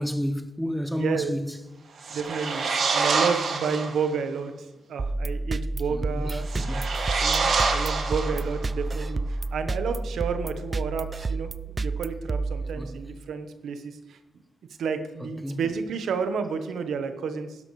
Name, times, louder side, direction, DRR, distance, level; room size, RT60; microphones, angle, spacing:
voice 1, 0.0-1.5 5.9-6.8 12.8-13.0 15.2-15.6, equal, ahead, 0.9 m, -31 dB
voice 2, 0.9-1.3 2.1-2.6 2.9-4.5 4.9-6.5 7.2-11.5 11.8-14.2 14.8-17.6, right 6 dB, 85° right, 1.0 m, -30 dB
sound 1, 2.0-4.0 6.4-8.8, right 4 dB, 70° right, 1.5 m, -26 dB
sound 2, 5.0-13.2, right 2 dB, 35° right, 0.4 m, -30 dB
12.0 x 10.5 x 3.2 m
cardioid pair, 80°, 0 cm